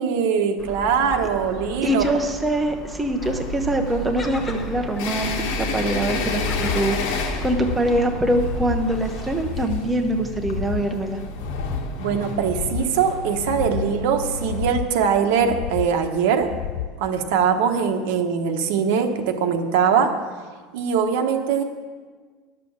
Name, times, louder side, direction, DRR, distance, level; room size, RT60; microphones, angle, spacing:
voice 1, 0.0-2.1 12.0-16.5 17.0-20.1 20.7-21.6, right 7 dB, 70° right, 5 dB, 1.1 m, -22 dB
Gull seagull, 0.6-9.5, equal, 15° left, 1.0 m, -36 dB
voice 2, 1.8-11.2, right 1 dB, 10° right, 3 dB, 0.6 m, -24 dB
sound 1, 3.2-14.8, left 1 dB, 80° left, 1.5 m, -30 dB
sound 2, 6.3-6.9 7.3-7.9 8.3-8.9 9.3-9.9 10.3-10.9 11.3-11.9 12.3-12.9 13.3-13.9 14.3-14.9 15.4-15.9 16.4-17.0 17.4-17.5, left 11 dB, 55° left, 0.4 m, -31 dB
11.0 x 6.9 x 7.1 m, 1.5 s
cardioid pair, 175°, 0 cm